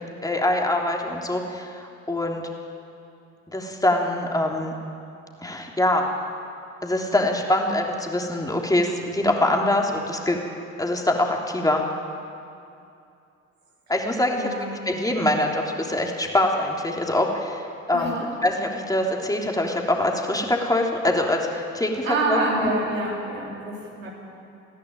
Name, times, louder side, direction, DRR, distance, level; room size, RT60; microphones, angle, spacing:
voice 1, 0.2-2.5 3.5-4.7 5.4-6.1 6.8-10.4 10.8-11.8 13.9-14.5 14.8-17.6 17.9-18.1 18.4-22.7, left 1 dB, 10° left, 1 dB, 3.3 m, -24 dB
voice 2, 14.4-14.7 17.9-18.3 22.0-24.1, right 2 dB, 80° right, -4 dB, 3.7 m, -27 dB
20.5 x 16.0 x 9.1 m, 2.6 s
figure-of-eight pair, 50°, 39 cm